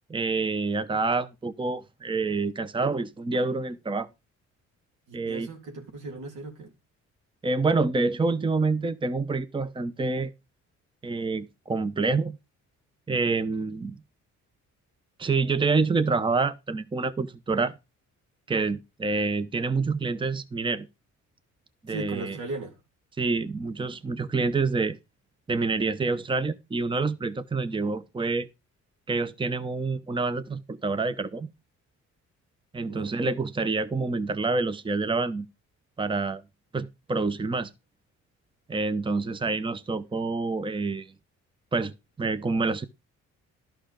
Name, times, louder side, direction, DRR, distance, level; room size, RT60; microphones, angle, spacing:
voice 1, 0.1-4.1 5.1-5.5 7.4-10.3 11.0-12.4 13.1-14.0 15.2-17.8 18.5-20.9 21.8-22.4 23.2-25.0 25.5-28.5 29.1-31.5 32.7-35.5 36.0-36.4 36.7-37.7 38.7-41.1 41.7-41.9 42.2-42.9, right 3 dB, 15° right, 0.8 m, -27 dB
voice 2, 5.1-6.7 21.9-22.8 32.9-33.2, right 3 dB, 90° right, 3.2 m, -37 dB
11.5 x 6.1 x 5.1 m
cardioid pair, 90°, 30 cm